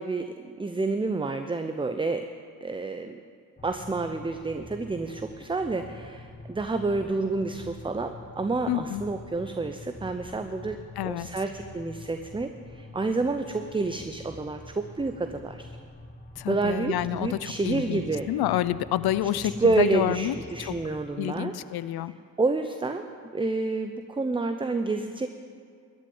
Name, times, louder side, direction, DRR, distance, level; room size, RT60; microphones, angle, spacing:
voice 1, 0.0-2.3 2.6-3.2 3.6-15.7 16.5-18.3 19.6-21.5 22.4-23.0 23.3-25.3, right 3 dB, 10° right, 7 dB, 0.6 m, -29 dB
sound 1, 3.6-21.0, left 2 dB, 25° left, 1.4 m, -46 dB
voice 2, 8.7-9.0 11.0-11.3 16.4-20.8 21.2-22.1, left 12 dB, 60° left, 17 dB, 0.6 m, -28 dB
13.5 x 6.4 x 9.6 m, 2.1 s
supercardioid pair, 60°, 42 cm